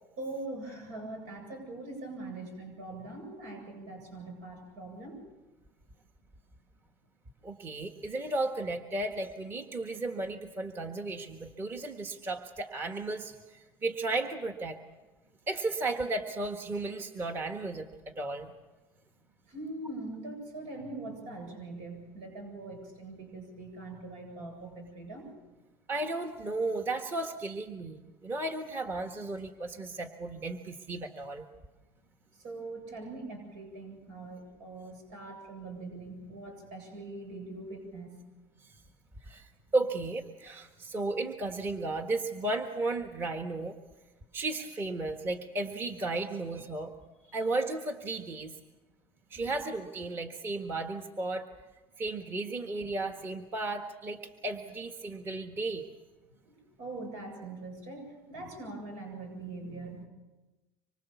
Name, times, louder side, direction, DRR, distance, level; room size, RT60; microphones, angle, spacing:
voice 1, 0.2-5.2 19.5-25.3 32.3-38.2 49.3-49.4 56.4-60.1, right 2 dB, 85° right, 4 dB, 8.0 m, -42 dB
voice 2, 7.4-14.8 15.5-18.5 25.9-31.4 39.2-43.8 44.3-46.9 47.3-48.5 49.3-51.5 52.0-55.8, right 2 dB, 25° right, 5 dB, 1.5 m, -34 dB
25.5 x 24.0 x 7.1 m, 1.1 s
cardioid pair, 150°, 9 cm